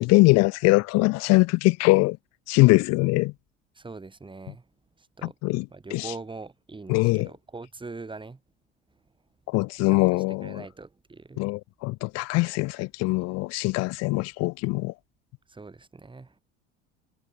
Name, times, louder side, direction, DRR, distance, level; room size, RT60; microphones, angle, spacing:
voice 1, 0.0-2.2 2.5-3.3 5.2-6.1 6.9-7.3 9.5-10.6 11.4-14.9, left 23 dB, 55° left, 0.9 m, -22 dB
voice 2, 3.8-4.7 5.2-5.3 5.7-8.4 9.9-10.0 10.4-11.4 15.5-16.3, right 3 dB, 15° right, 3.6 m, -42 dB
figure-of-eight pair, 70°, 32 cm